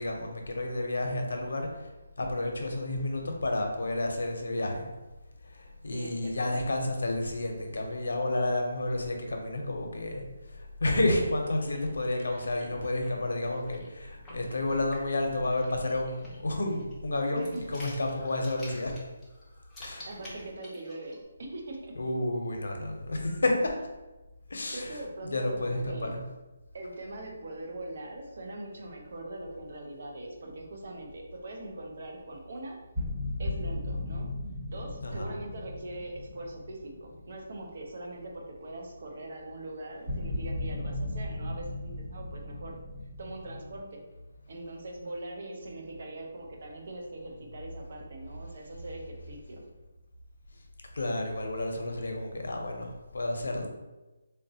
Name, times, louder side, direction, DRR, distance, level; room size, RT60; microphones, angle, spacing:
voice 1, 0.0-1.7 2.2-4.9 5.4-10.2 10.5-18.9 19.8-20.1 21.9-23.7 24.5-26.2 35.0-35.3 50.9-53.7, left 2 dB, 90° left, 2 dB, 0.6 m, -31 dB
voice 2, 5.9-6.6 17.4-17.7 20.1-22.0 24.7-26.2 26.7-32.8 33.4-34.3 34.7-42.8 43.2-44.1 44.5-49.6, right 1 dB, 45° right, 0 dB, 0.6 m, -41 dB
sound 1, 11.2-21.2, left 1 dB, 5° left, 0.5 m, -50 dB
sound 2, 30.4-31.3 32.9-38.0 38.3-38.5 40.1-43.8, left 1 dB, 20° right, 1.2 m, -36 dB
3.7 x 2.1 x 2.7 m, 1.1 s
hypercardioid pair, 175°, 0 cm